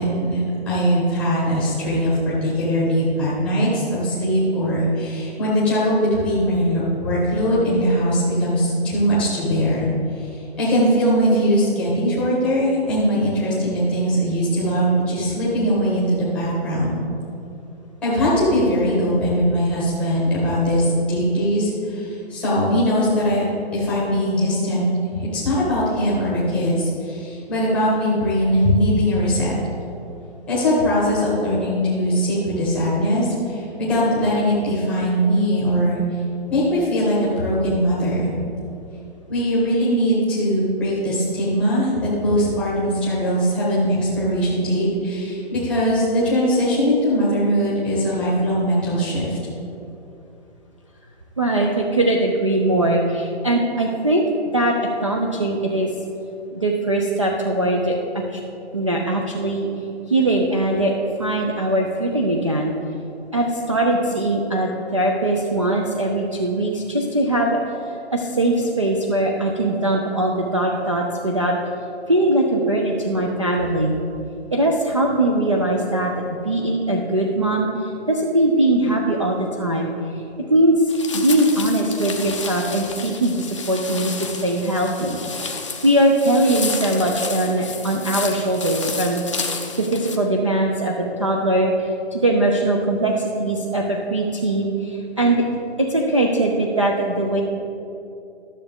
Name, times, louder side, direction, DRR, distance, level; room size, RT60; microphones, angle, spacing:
voice 1, 0.0-9.9 10.1-10.3 10.6-16.9 18.0-23.4 23.7-29.5 30.5-36.0 36.5-38.3 39.3-49.4, equal, 5° left, -8 dB, 0.9 m, -20 dB
voice 2, 51.4-54.2 54.5-55.9 56.5-58.4 58.7-59.7 60.1-62.7 63.3-67.6 67.9-71.6 72.1-74.0 74.5-76.1 76.4-85.2 85.8-89.2 89.8-95.4 95.8-97.4, right 1 dB, 30° right, 0 dB, 0.4 m, -21 dB
sound 1, 80.9-90.2, left 4 dB, 30° left, 0.5 m, -31 dB
12.5 x 6.7 x 3.5 m, 2.8 s
hypercardioid pair, 170°, 32 cm